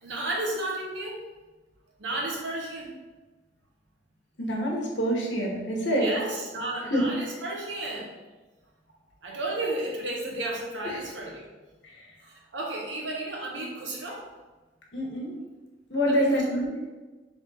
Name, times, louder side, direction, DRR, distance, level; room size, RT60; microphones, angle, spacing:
voice 1, 0.0-1.2 2.0-3.0 6.0-8.1 9.2-11.5 12.2-14.2 16.1-16.4, right 2 dB, 90° right, -1 dB, 1.1 m, -33 dB
voice 2, 4.4-6.1 6.9-7.0 10.9-11.1 11.9-12.0 14.9-15.3 15.9-16.7, equal, 85° left, -2 dB, 1.2 m, -26 dB
3.6 x 3.6 x 4.1 m, 1.2 s
head